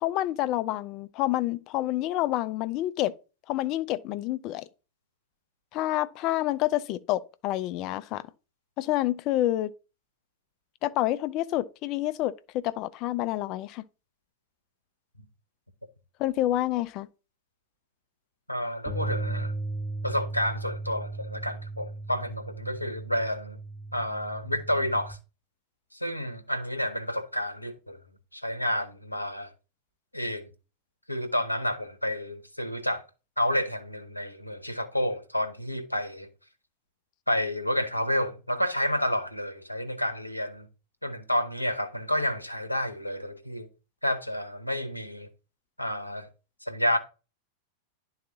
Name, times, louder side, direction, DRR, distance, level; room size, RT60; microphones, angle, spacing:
voice 1, 0.0-3.1 3.5-4.6 5.7-8.2 8.8-9.7 10.8-13.8 16.2-17.1, left 15 dB, 40° left, 0.4 m, -28 dB
voice 2, 18.5-19.5 20.0-23.6 23.9-25.2 25.9-28.0 28.3-29.5 30.1-30.5 31.1-33.0 33.4-36.3 37.3-40.7 41.0-43.7 44.0-45.3 45.8-46.3 46.6-47.0, equal, 85° left, 0.8 m, -30 dB
sound 1, 18.9-25.1, right 2 dB, 40° right, 2.7 m, -36 dB
11.0 x 4.0 x 2.8 m
figure-of-eight pair, 90°, 0 cm